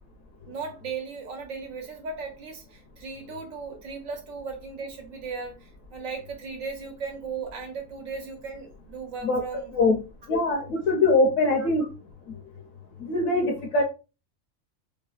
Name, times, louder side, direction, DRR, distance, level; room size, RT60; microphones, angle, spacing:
voice 1, 0.4-10.0 11.6-11.7, right 5 dB, 85° right, 2 dB, 1.2 m, -37 dB
voice 2, 10.3-11.9 13.0-13.8, left 2 dB, 75° left, 3 dB, 1.0 m, -22 dB
3.2 x 2.1 x 2.3 m, 0.30 s
omnidirectional pair, 1.4 m